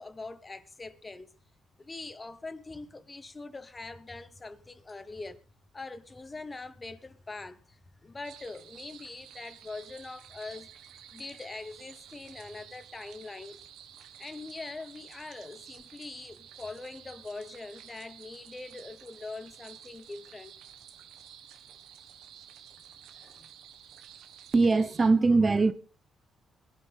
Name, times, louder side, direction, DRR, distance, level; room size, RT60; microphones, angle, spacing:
voice 1, 0.0-1.3 1.8-5.4 5.7-10.7 11.1-13.6 14.2-20.5 23.1-23.5, left 3 dB, 25° left, 1.2 m, -43 dB
sound 1, 8.2-25.1, right 9 dB, 85° right, 1.5 m, -52 dB
voice 2, 24.5-25.7, right 3 dB, 30° right, 0.8 m, -22 dB
22.5 x 11.0 x 3.5 m
cardioid pair, 90°, 0 cm